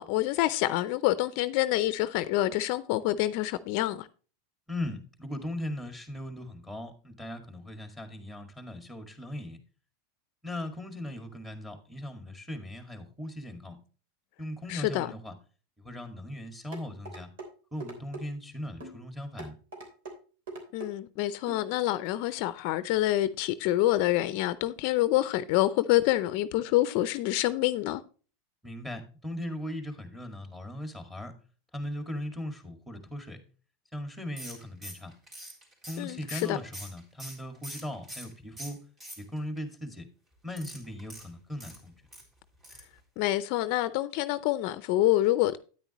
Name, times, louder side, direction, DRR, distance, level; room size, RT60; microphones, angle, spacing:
voice 1, 0.0-4.1 14.7-15.1 20.7-28.0 36.0-36.6 43.2-45.6, left 15 dB, 55° left, 0.5 m, -27 dB
voice 2, 4.7-9.6 10.4-13.8 14.4-15.3 15.8-17.3 17.7-19.6 28.6-31.3 31.7-33.4 33.9-35.1 35.9-38.8 39.2-40.1 40.4-41.9, left 1 dB, 5° right, 2.0 m, -38 dB
sound 1, 16.7-17.5 17.8-18.2 18.8-19.0 19.4-20.2 20.5-20.9 21.5-21.6 22.1-22.2, right 2 dB, 80° right, 3.4 m, -41 dB
sound 2, 34.4-38.3 38.6-39.6 40.5-42.2 42.6-42.9 43.2-43.3 43.6-43.7, right 1 dB, 25° right, 3.6 m, -44 dB
9.4 x 9.0 x 3.0 m
supercardioid pair, 125°, 0 cm